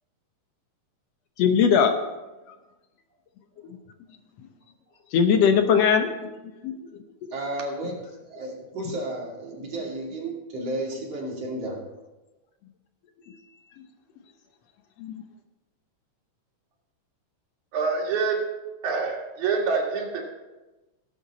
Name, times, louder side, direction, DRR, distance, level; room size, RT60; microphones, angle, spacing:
voice 1, 1.4-1.9 5.1-6.3 6.6-6.8 15.0-15.1, left 7 dB, 70° left, 6 dB, 1.9 m, -20 dB
voice 2, 7.3-11.8, right 1 dB, 55° right, -2 dB, 3.5 m, -33 dB
voice 3, 17.7-18.5 18.8-20.3, right 4 dB, 85° right, -1 dB, 3.4 m, -26 dB
17.0 x 8.0 x 4.1 m, 1.1 s
omnidirectional pair, 3.3 m